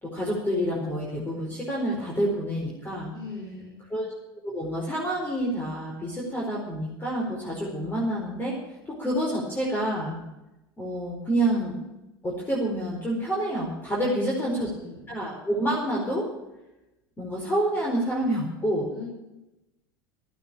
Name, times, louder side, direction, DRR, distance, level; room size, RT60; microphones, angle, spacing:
voice 1, 0.0-3.1 3.9-4.1 4.4-8.6 8.9-10.2 10.8-11.8 12.2-14.7 15.1-16.3 17.2-18.9, right 1 dB, 15° left, -3 dB, 4.8 m, -28 dB
voice 2, 3.1-3.8 13.9-14.3 14.6-14.9 18.9-19.0, left 4 dB, 35° left, -3 dB, 5.5 m, -40 dB
13.0 x 9.4 x 8.9 m, 0.96 s
hypercardioid pair, 85°, 12 cm